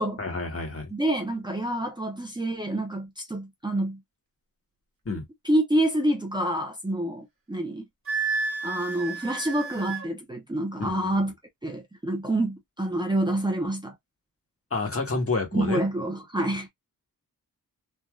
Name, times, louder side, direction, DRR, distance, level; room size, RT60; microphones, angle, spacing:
voice 1, 0.2-0.9 5.0-5.2 10.8-11.0 14.7-15.8, left 3 dB, 40° left, 1.3 m, -29 dB
voice 2, 0.9-4.0 5.4-7.8 8.6-11.3 11.6-13.9 15.5-16.7, right 1 dB, 15° right, 0.6 m, -27 dB
Wind instrument woodwind instrument, 8.1-10.1, right 4 dB, 40° right, 1.5 m, -31 dB
3.4 x 2.6 x 2.3 m
wide cardioid pair, 135°, 34 cm